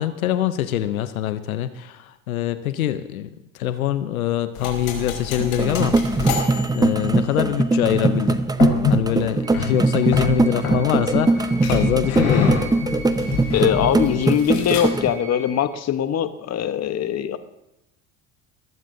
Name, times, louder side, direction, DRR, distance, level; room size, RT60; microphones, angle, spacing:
voice 1, 0.0-3.3 3.5-6.0 6.7-8.4 8.9-12.6, left 12 dB, 85° left, 12 dB, 0.8 m, -24 dB
sound 1, 4.5-7.5 8.6-9.1 9.5-9.7 10.1-11.2 11.6-15.1, left 6 dB, 60° left, 4.8 m, -27 dB
sound 2, 5.4-15.1, right 3 dB, 10° right, 0.7 m, -21 dB
sound 3, 9.4-15.7, right 2 dB, 45° right, 4.8 m, -41 dB
voice 2, 13.5-17.4, left 9 dB, 40° left, 11 dB, 1.1 m, -22 dB
21.5 x 14.5 x 2.7 m, 0.88 s
hypercardioid pair, 70°, 41 cm